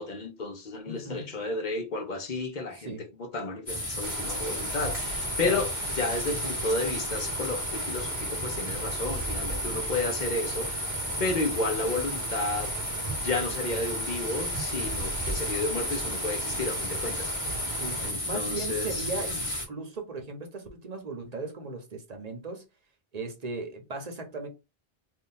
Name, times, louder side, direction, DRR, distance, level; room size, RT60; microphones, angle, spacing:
voice 1, 0.0-2.9 3.2-12.7 13.2-17.4 18.0-19.3, left 3 dB, 50° left, 1.0 m, -32 dB
voice 2, 0.9-1.3 2.7-3.0 5.4-5.7 17.8-18.0 18.3-22.6 23.1-24.5, right 3 dB, 45° right, 0.9 m, -37 dB
sound 1, 3.7-19.7, left 1 dB, 35° left, 1.3 m, -33 dB
sound 2, 4.0-18.1, right 5 dB, 85° right, 1.0 m, -40 dB
2.8 x 2.6 x 3.7 m
omnidirectional pair, 1.0 m